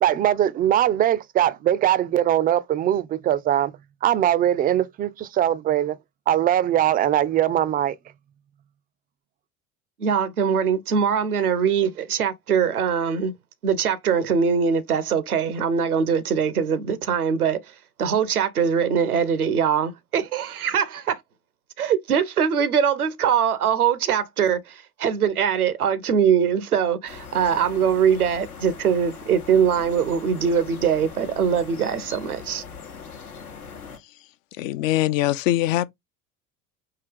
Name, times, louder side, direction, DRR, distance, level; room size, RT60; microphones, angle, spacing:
voice 1, 0.0-3.7 4.0-6.0 6.3-8.0, right 11 dB, 25° right, 0.3 m, -21 dB
voice 2, 10.0-13.3 13.6-17.6 18.0-21.2 21.8-32.6, right 7 dB, 85° right, 0.7 m, -22 dB
sound 1, 27.1-34.0, left 6 dB, 85° left, 1.0 m, -41 dB
voice 3, 34.6-35.9, left 14 dB, 60° left, 0.5 m, -22 dB
4.8 x 2.8 x 3.4 m
figure-of-eight pair, 65°, 43 cm